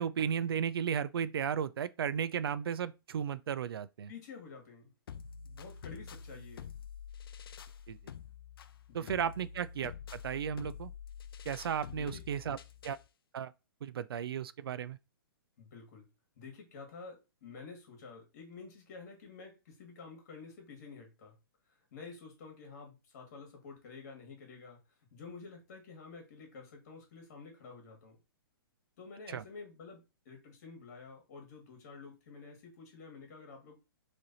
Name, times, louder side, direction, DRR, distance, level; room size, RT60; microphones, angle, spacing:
voice 1, 0.0-4.1 7.9-8.0 8.9-10.9 11.5-12.6 12.8-13.0 13.3-13.5 13.8-15.0 29.3-29.4, right 8 dB, 75° right, 0.4 m, -34 dB
voice 2, 4.1-4.9 5.4-6.7 8.9-9.1 11.9-12.2 15.6-16.1 16.4-21.3 21.9-24.8 25.1-28.1 29.0-30.0 30.3-33.7, left 4 dB, 45° left, 2.1 m, -50 dB
sound 1, 5.1-13.1, left 7 dB, 70° left, 0.5 m, -47 dB
3.8 x 3.3 x 4.1 m
hypercardioid pair, 165°, 13 cm